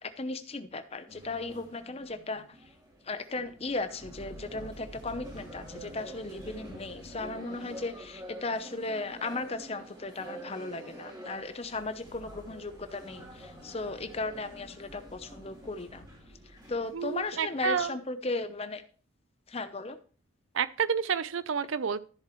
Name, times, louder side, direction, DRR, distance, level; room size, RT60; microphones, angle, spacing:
voice 1, 0.0-2.6 3.0-16.0 16.4-18.8 19.5-20.0, left 3 dB, 30° left, 10 dB, 0.7 m, -36 dB
sound 1, 1.1-17.8, right 1 dB, 20° right, 3.1 m, -47 dB
voice 2, 16.9-18.0 20.5-22.0, right 6 dB, 70° right, 16 dB, 0.5 m, -29 dB
13.5 x 7.3 x 3.1 m, 0.41 s
head